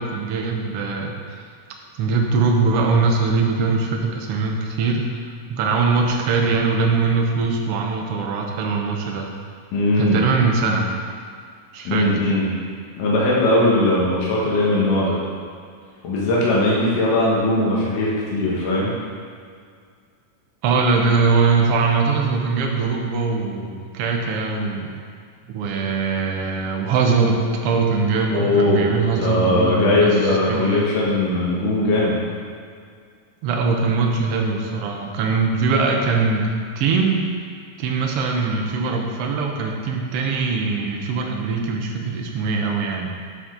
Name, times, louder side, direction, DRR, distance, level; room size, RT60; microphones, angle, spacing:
voice 1, 0.0-1.4 2.0-5.1 5.5-9.3 10.0-10.9 11.7-12.1 20.6-24.9 25.5-30.9 33.4-36.5 36.8-37.2 37.8-43.1, right 4 dB, 75° right, 1 dB, 1.3 m, -21 dB
voice 2, 9.7-10.2 11.8-12.5 13.0-15.2 16.0-18.9 28.3-32.2, left 1 dB, 80° left, -6 dB, 3.0 m, -19 dB
9.8 x 5.1 x 3.8 m, 2.2 s
omnidirectional pair, 3.7 m